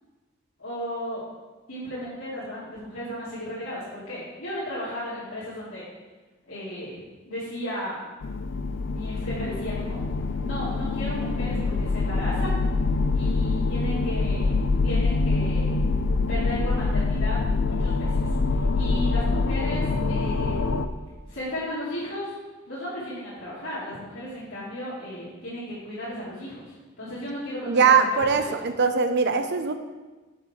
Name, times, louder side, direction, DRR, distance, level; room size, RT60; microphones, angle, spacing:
voice 1, 0.6-1.2 1.7-5.8 6.5-8.0 8.8-10.0 10.4-12.6 13.1-14.5 14.8-15.8 16.3-20.7 21.3-22.3 22.7-28.5, equal, 85° left, -11 dB, 2.7 m, -35 dB
sound 1, 8.2-20.9, left 3 dB, 65° left, 0.5 m, -25 dB
voice 2, 27.7-29.7, right 5 dB, 60° right, 7 dB, 0.7 m, -21 dB
7.4 x 6.5 x 4.4 m, 1.2 s
head